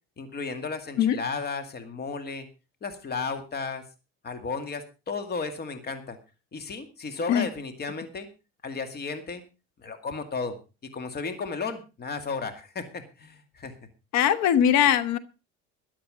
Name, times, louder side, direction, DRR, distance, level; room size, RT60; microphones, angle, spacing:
voice 1, 0.2-2.5 2.8-3.8 4.2-6.2 6.5-8.3 8.6-9.4 9.8-10.6 10.9-13.7, left 4 dB, 35° left, 8 dB, 2.2 m, -34 dB
voice 2, 14.1-15.2, left 9 dB, 70° left, 15 dB, 1.2 m, -21 dB
13.5 x 11.5 x 5.0 m, 0.31 s
cardioid pair, 110°, 29 cm